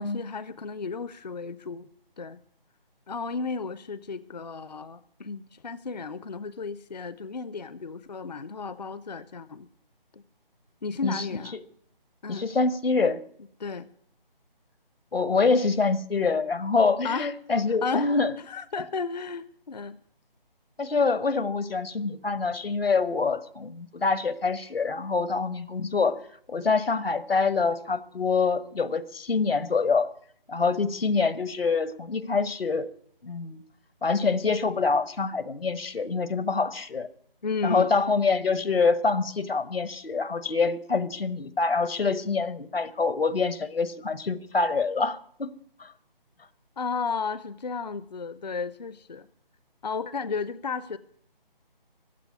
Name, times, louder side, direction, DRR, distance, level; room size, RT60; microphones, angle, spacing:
voice 1, 0.0-1.9 2.2-2.4 3.1-9.7 10.1-10.2 10.8-11.6 12.2-12.5 13.6-13.9 17.0-17.3 17.8-18.1 18.4-20.0 37.4-37.9 46.8-49.3 49.8-51.0, left 5 dB, 45° left, 15 dB, 0.5 m, -33 dB
voice 2, 12.3-13.2 15.1-18.3 20.8-26.2 26.5-30.1 30.5-32.9 33.2-33.6 34.0-37.1 37.6-45.5 45.8-45.9, left 4 dB, 80° left, 15 dB, 1.3 m, -25 dB
15.5 x 9.8 x 9.6 m, 0.64 s
figure-of-eight pair, 170°, 29 cm